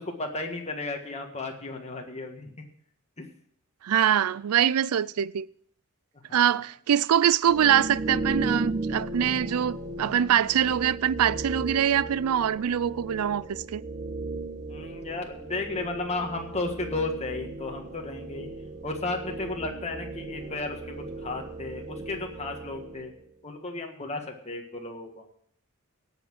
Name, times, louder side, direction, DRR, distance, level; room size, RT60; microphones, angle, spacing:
voice 1, 0.0-2.5 3.2-3.3 6.3-6.6 14.7-18.5 18.8-23.1 23.4-25.2, left 3 dB, 30° left, 1.5 m, -34 dB
voice 2, 3.8-5.5 6.3-13.8, right 9 dB, 80° right, 0.4 m, -24 dB
sound 1, 7.4-23.2, right 2 dB, 35° right, 1.0 m, -36 dB
17.0 x 5.8 x 6.1 m
head